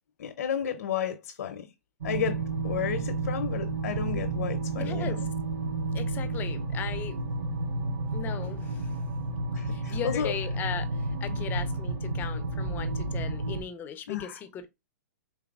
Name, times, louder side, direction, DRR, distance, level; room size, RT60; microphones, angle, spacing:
voice 1, 0.2-1.7 2.0-5.3 9.5-10.3 11.3-11.5 14.1-14.4, left 8 dB, 75° left, 0.5 m, -32 dB
sound 1, 2.0-13.6, right 2 dB, 60° right, 2.3 m, -31 dB
voice 2, 4.7-5.2 5.9-7.2 8.1-8.9 9.7-10.9 11.2-14.7, left 8 dB, 20° left, 0.4 m, -37 dB
3.9 x 3.3 x 2.3 m
hypercardioid pair, 130°, 9 cm